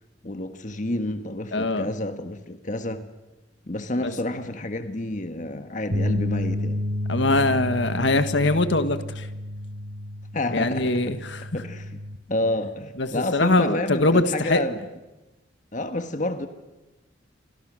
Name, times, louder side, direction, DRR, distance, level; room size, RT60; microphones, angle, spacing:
voice 1, 0.2-3.0 3.7-6.8 10.3-11.1 11.5-12.0 12.3-14.8 15.7-16.5, left 1 dB, 40° left, 8 dB, 1.4 m, -29 dB
voice 2, 1.5-1.9 4.0-4.1 7.1-9.3 10.5-11.4 13.0-14.6, left 2 dB, 70° left, 10 dB, 1.6 m, -22 dB
sound 1, 5.9-12.2, left 1 dB, 70° right, 4.1 m, -30 dB
29.5 x 24.0 x 6.3 m, 1.1 s
head